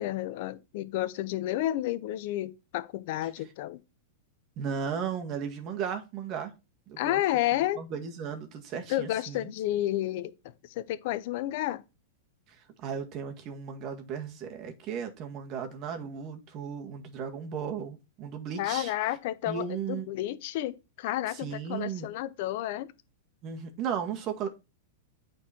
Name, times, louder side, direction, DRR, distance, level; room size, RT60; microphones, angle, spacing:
voice 1, 0.0-3.8 7.0-7.8 8.9-10.3 10.7-11.8 18.6-19.6 20.1-22.9, left 14 dB, 60° left, 0.7 m, -31 dB
voice 2, 4.6-6.5 6.9-7.2 7.8-9.5 12.5-18.9 19.5-20.1 21.3-22.1 23.4-24.5, right 7 dB, 40° right, 1.9 m, -35 dB
8.7 x 4.6 x 4.4 m
hypercardioid pair, 115°, 0 cm